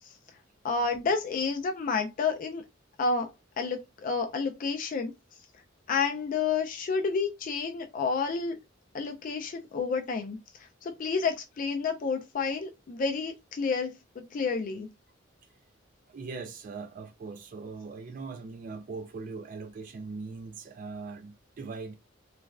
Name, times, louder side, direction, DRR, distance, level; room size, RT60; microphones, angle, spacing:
voice 1, 0.6-2.6 3.0-3.3 3.6-5.1 5.9-8.6 8.9-10.4 10.8-14.9, left 4 dB, 45° left, 0.3 m, -30 dB
voice 2, 16.1-22.0, right 4 dB, 45° right, 0.3 m, -40 dB
3.1 x 2.3 x 2.3 m
head